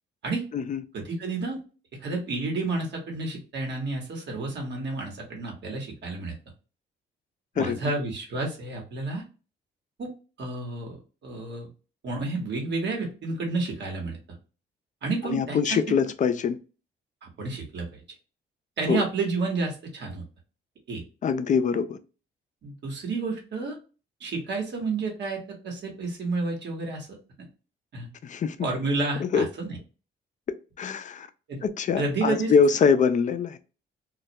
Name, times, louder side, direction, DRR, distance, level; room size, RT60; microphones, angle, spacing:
voice 1, 0.9-1.6 2.0-6.3 7.5-9.2 10.0-10.1 10.4-11.7 12.0-14.4 15.0-15.8 17.2-18.0 18.8-20.2 20.9-21.0 22.6-23.8 24.2-27.1 27.9-28.1 28.6-29.8 31.5-31.6 32.0-32.5, right 3 dB, 60° right, 1.0 m, -30 dB
voice 2, 15.2-16.6 18.9-19.0 21.2-22.0 28.2-28.6 29.2-29.5 30.8-31.3 31.6-33.6, left 6 dB, 40° left, 0.4 m, -23 dB
2.2 x 2.1 x 2.7 m
cardioid pair, 90°, 20 cm